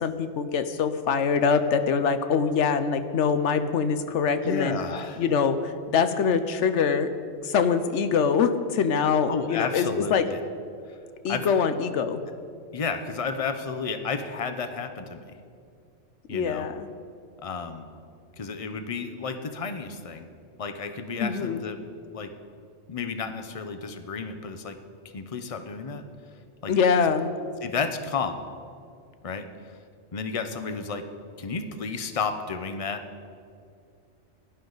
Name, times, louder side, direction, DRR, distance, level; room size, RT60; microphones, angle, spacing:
voice 1, 0.0-4.8 5.2-7.1 7.4-10.3 11.2-12.2 16.3-16.9 21.2-21.6 26.7-27.3, left 6 dB, 75° left, 10 dB, 1.0 m, -24 dB
voice 2, 4.4-5.2 9.3-10.4 10.9-11.0 11.3-11.5 12.7-15.4 16.3-16.7 17.4-17.9 18.4-20.3 20.6-21.8 22.1-22.3 22.9-24.8 25.1-26.0 26.6-26.7 27.6-28.4 29.2-29.5 30.1-31.0 31.4-33.0, left 5 dB, 35° left, 8 dB, 0.7 m, -32 dB
16.5 x 11.5 x 4.0 m, 2.4 s
omnidirectional pair, 1.3 m